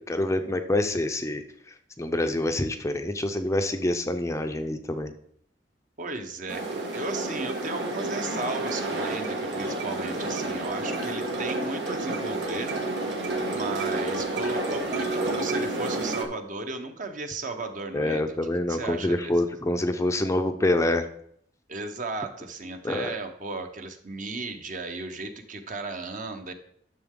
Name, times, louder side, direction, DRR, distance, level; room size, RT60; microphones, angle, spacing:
voice 1, 0.0-1.4 2.0-5.1 17.9-21.1 22.8-23.1, left 1 dB, 15° left, 7 dB, 0.5 m, -26 dB
voice 2, 6.0-6.7 6.9-12.8 13.5-18.3 18.7-19.3 21.7-26.5, right 3 dB, 50° right, 6 dB, 1.0 m, -35 dB
sound 1, 6.5-16.2, right 2 dB, 90° right, 2.0 m, -30 dB
10.5 x 6.6 x 3.7 m, 0.67 s
head